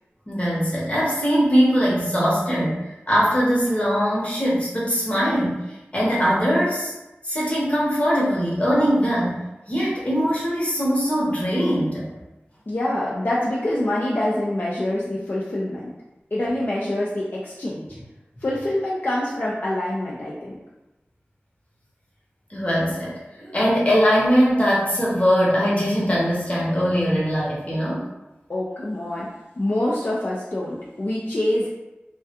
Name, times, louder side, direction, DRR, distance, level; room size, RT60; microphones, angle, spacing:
voice 1, 0.3-5.6 5.9-6.9 7.2-9.4 9.7-12.1 22.5-28.1, equal, 30° left, -6 dB, 0.8 m, -21 dB
voice 2, 12.7-15.9 16.3-18.0 18.4-20.6 28.5-29.3 29.6-31.8, left 1 dB, 50° left, -6 dB, 0.4 m, -25 dB
2.3 x 2.2 x 2.8 m, 0.99 s
wide cardioid pair, 60°, 4 cm